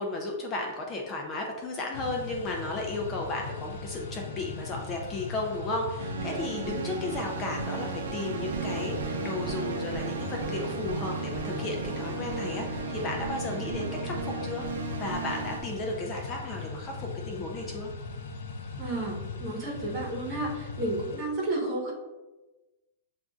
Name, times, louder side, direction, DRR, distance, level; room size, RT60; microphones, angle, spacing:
voice 1, 0.0-14.7 15.0-17.9, left 2 dB, 25° left, 0 dB, 0.5 m, -34 dB
sound 1, 1.9-21.2, left 4 dB, 70° left, 0.5 m, -39 dB
sound 2, 6.0-15.6, right 5 dB, 85° right, 0.5 m, -35 dB
voice 2, 18.8-21.9, right 2 dB, 30° right, -3 dB, 1.1 m, -32 dB
7.4 x 2.5 x 2.4 m, 1.1 s
supercardioid pair, 155°, 0 cm